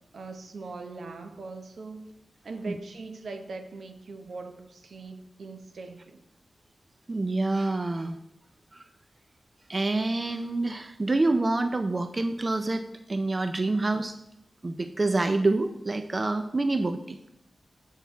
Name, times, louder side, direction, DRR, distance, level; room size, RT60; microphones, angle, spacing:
voice 1, 0.1-2.1 2.4-6.2, right 3 dB, 75° right, 7 dB, 0.8 m, -41 dB
voice 2, 7.1-8.2 8.7-8.8 9.7-14.2 14.6-17.2, right 2 dB, 30° right, 8 dB, 0.4 m, -27 dB
7.0 x 6.3 x 4.5 m, 0.83 s
wide cardioid pair, 145°, 0 cm